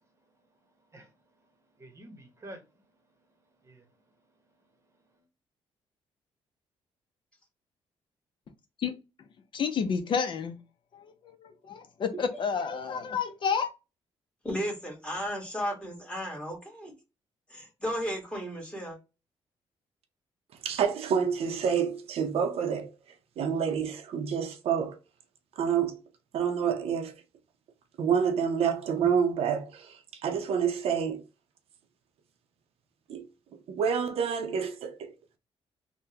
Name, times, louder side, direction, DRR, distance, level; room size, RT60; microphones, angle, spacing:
voice 1, 0.0-5.2, right 1 dB, 30° right, 0.9 m, -53 dB
voice 2, 9.5-10.6 10.9-11.0 11.4-13.7, left 6 dB, 50° left, 0.5 m, -30 dB
voice 3, 14.4-16.9 17.5-19.0, equal, 10° left, 1.4 m, -34 dB
voice 4, 20.6-22.9 23.4-25.0 25.6-26.0 26.3-27.2 28.0-31.2 33.1-33.3 33.7-35.1, right 7 dB, 70° right, 0.6 m, -28 dB
3.5 x 2.1 x 2.8 m
cardioid pair, 105°, 10 cm